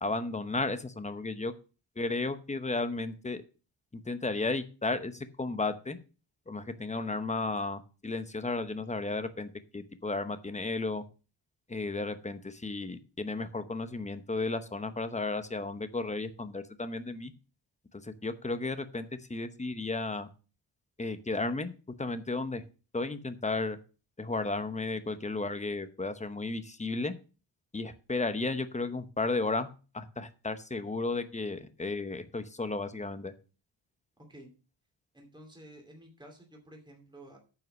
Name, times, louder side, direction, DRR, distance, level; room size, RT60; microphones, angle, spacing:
voice 1, 0.0-1.5 2.0-3.4 3.9-6.0 6.5-11.0 11.7-17.3 18.0-20.3 21.0-21.7 22.0-22.6 22.9-23.8 24.2-27.1 27.7-33.3, left 3 dB, 15° left, 11 dB, 0.8 m, -34 dB
voice 2, 35.1-37.4, right 1 dB, 10° right, 1 dB, 2.7 m, -51 dB
9.3 x 5.7 x 6.3 m, 0.35 s
wide cardioid pair, 145°, 45 cm